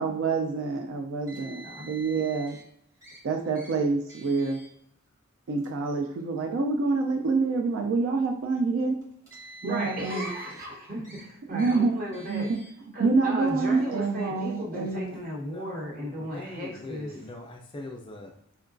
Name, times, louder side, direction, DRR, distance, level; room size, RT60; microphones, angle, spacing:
voice 1, 0.0-2.6 3.2-4.6 5.5-9.0 9.6-10.3 11.5-12.0 12.3-12.6 13.0-15.2, right 4 dB, 65° right, 3 dB, 0.3 m, -27 dB
Car, 1.3-2.6 3.0-3.2 3.5-3.7 4.1-4.7 5.5-5.7 6.6-6.7 9.0-10.7 11.0-11.2 11.6-11.8 12.1-12.7, right 1 dB, 15° right, 0.8 m, -47 dB
voice 2, 1.3-1.9 9.4-12.5 12.9-17.1, equal, 45° right, -4 dB, 1.0 m, -36 dB
voice 3, 15.4-18.4, left 1 dB, 25° left, 1 dB, 0.3 m, -41 dB
3.7 x 2.2 x 2.5 m, 0.71 s
head